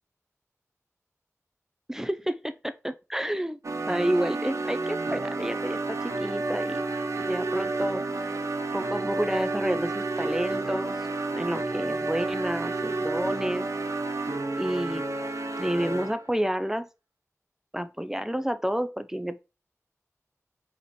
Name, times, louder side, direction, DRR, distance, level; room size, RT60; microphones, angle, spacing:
voice 1, 1.9-3.6 3.9-6.8 7.2-8.4 8.7-11.1 11.3-13.7 14.6-15.0 15.6-16.9 17.7-19.4, right 1 dB, 10° right, 0.4 m, -30 dB
sound 1, 3.6-16.3, right 3 dB, 65° right, 0.6 m, -30 dB
4.2 x 4.1 x 3.0 m
wide cardioid pair, 60°, 6 cm